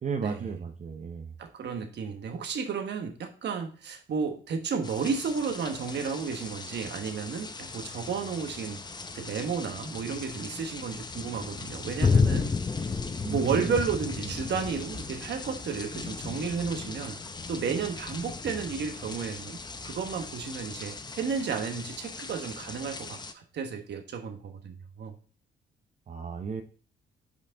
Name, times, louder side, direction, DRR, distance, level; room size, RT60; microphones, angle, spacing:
voice 1, 0.0-1.3 13.2-13.8 14.2-14.3 18.4-18.6 26.1-26.6, right 5 dB, 35° right, 5 dB, 0.6 m, -35 dB
voice 2, 1.4-8.8 9.1-12.5 13.3-17.2 17.5-19.6 19.8-25.1, right 6 dB, 60° right, 5 dB, 1.2 m, -32 dB
sound 1, 4.8-23.3, left 4 dB, 20° left, 0.6 m, -34 dB
5.3 x 5.2 x 3.7 m, 0.40 s
cardioid pair, 90°, 20 cm